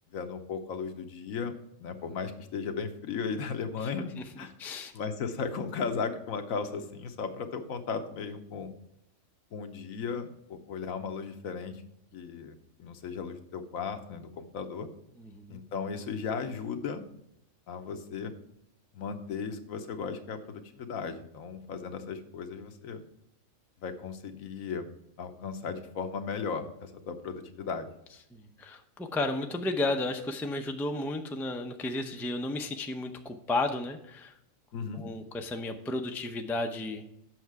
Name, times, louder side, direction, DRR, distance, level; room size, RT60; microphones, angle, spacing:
voice 1, 0.1-4.1 4.4-4.5 4.9-8.7 9.5-11.8 12.1-14.9 15.5-17.0 17.7-18.3 18.9-23.0 23.8-24.9 25.2-27.9 34.7-35.0, left 5 dB, 80° left, 7 dB, 1.3 m, -36 dB
voice 2, 4.6-4.9 15.2-15.6 28.3-34.3 34.9-37.1, left 2 dB, 5° left, 5 dB, 0.3 m, -33 dB
7.8 x 6.5 x 4.7 m, 0.78 s
omnidirectional pair, 1.4 m